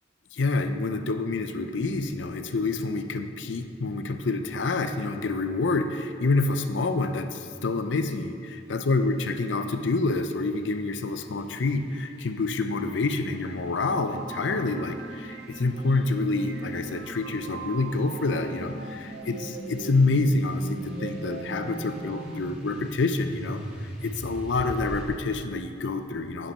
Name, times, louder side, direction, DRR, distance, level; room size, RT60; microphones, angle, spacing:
voice 1, 0.3-26.5, left 3 dB, 85° left, 7 dB, 0.6 m, -27 dB
sound 1, 7.4-25.2, equal, 5° right, 1.5 m, -42 dB
sound 2, 13.7-22.4, right 6 dB, 75° right, 0.5 m, -43 dB
9.7 x 6.1 x 5.5 m, 2.3 s
head